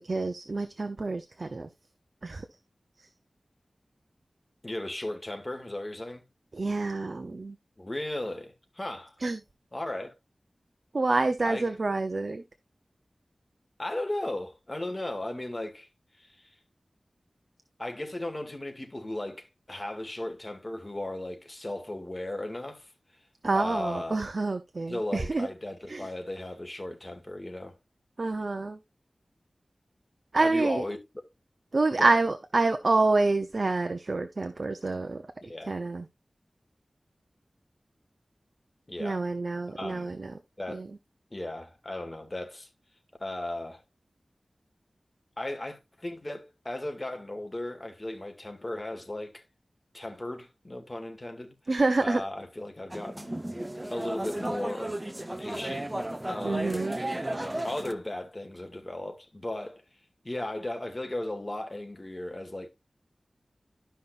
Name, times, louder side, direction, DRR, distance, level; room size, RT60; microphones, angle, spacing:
voice 1, 0.0-1.7 2.2-2.5 6.5-7.6 9.2-9.4 10.9-12.4 23.4-25.5 25.9-26.1 28.2-28.8 30.3-30.8 31.7-36.0 39.0-40.3 40.7-40.9 51.7-52.2 56.4-57.0, right 3 dB, 60° right, 0.7 m, -27 dB
voice 2, 4.6-6.2 7.8-9.1 9.7-10.1 11.4-11.7 13.8-15.9 16.2-16.6 17.8-22.9 23.5-24.2 24.9-27.8 30.3-31.0 31.9-32.1 35.4-35.7 38.9-39.2 39.8-40.1 40.6-40.8 41.3-42.7 43.2-43.8 45.4-49.4 49.9-51.5 52.0-53.3 53.9-55.0 55.4-55.9 56.3-56.8 57.6-59.8 60.2-62.7, left 1 dB, 35° left, 2.2 m, -36 dB
sound 1, 52.9-57.9, right 1 dB, 25° right, 0.8 m, -34 dB
12.5 x 5.6 x 2.5 m
cardioid pair, 40°, 0 cm